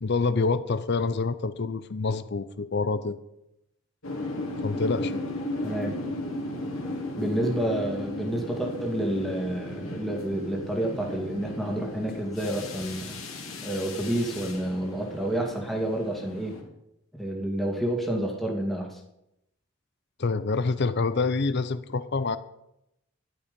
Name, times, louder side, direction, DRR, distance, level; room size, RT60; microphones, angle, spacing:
voice 1, 0.0-3.2 4.6-5.2 20.2-22.4, left 4 dB, 50° left, 13 dB, 0.6 m, -27 dB
sound 1, 4.0-16.6, left 1 dB, 70° left, 2.9 m, -35 dB
voice 2, 5.6-5.9 7.2-13.2 13.6-16.5 17.2-19.0, right 1 dB, ahead, 0 dB, 2.1 m, -29 dB
12.5 x 11.5 x 5.2 m, 0.84 s
head